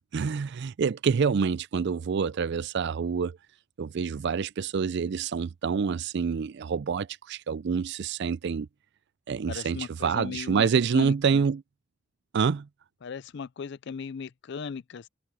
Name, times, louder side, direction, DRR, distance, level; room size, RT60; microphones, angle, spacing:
voice 1, 0.1-3.4 3.8-8.7 9.3-11.6 12.3-12.7, right 6 dB, 55° right, 0.4 m, -27 dB
voice 2, 9.5-10.7 10.9-11.5 13.0-15.1, left 6 dB, 55° left, 0.4 m, -37 dB
head